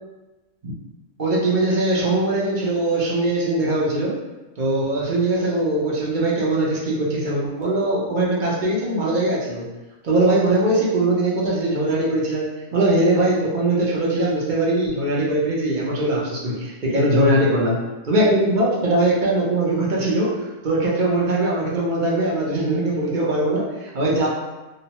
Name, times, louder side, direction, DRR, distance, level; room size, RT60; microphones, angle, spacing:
voice 1, 1.2-4.2 4.6-9.6 10.0-12.5 12.7-17.8 18.1-24.3, right 1 dB, 50° right, -5 dB, 0.6 m, -21 dB
2.9 x 2.1 x 2.8 m, 1.1 s
omnidirectional pair, 1.4 m